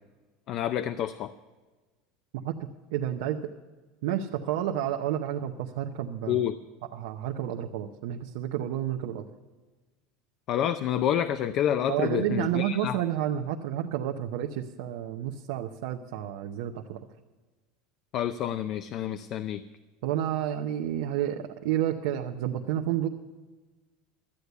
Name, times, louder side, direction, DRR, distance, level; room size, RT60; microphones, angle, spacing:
voice 1, 0.5-1.3 6.3-6.5 10.5-13.0 18.1-19.6, left 10 dB, 45° left, 11 dB, 0.4 m, -28 dB
voice 2, 2.9-3.4 4.0-6.4 6.9-9.2 11.9-17.0 20.0-23.1, right 11 dB, 75° right, 2 dB, 0.8 m, -30 dB
13.0 x 8.2 x 8.0 m, 1.3 s
supercardioid pair, 140°, 0 cm